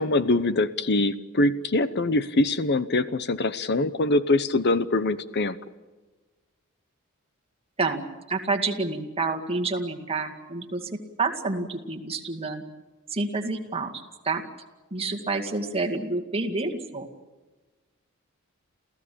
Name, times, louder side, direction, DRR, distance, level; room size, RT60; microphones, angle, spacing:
voice 1, 0.0-5.6, left 2 dB, 50° left, 14 dB, 0.9 m, -23 dB
voice 2, 7.8-12.6 13.1-14.4 14.9-17.1, right 3 dB, 25° right, 2 dB, 2.1 m, -29 dB
29.0 x 15.5 x 8.7 m, 1.2 s
head